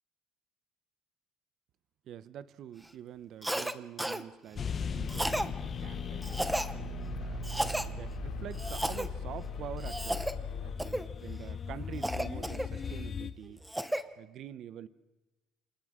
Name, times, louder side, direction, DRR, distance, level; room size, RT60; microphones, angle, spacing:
voice 1, 2.1-6.4 7.2-7.4 8.0-10.3 10.6-13.6 14.2-14.9, right 10 dB, 50° right, 0.8 m, -46 dB
Cough, 3.4-3.7 4.0-4.2 5.1-5.5 6.2-6.7 7.4-7.9 8.6-9.1 9.8-10.3 10.8-11.1 12.0-13.0 13.4-14.0, right 1 dB, 5° right, 0.9 m, -33 dB
sound 1, 4.5-13.3, left 6 dB, 30° left, 0.9 m, -39 dB
sound 2, 5.0-10.8, left 2 dB, 70° left, 2.7 m, -41 dB
28.0 x 27.0 x 3.7 m
cardioid pair, 140°, 0 cm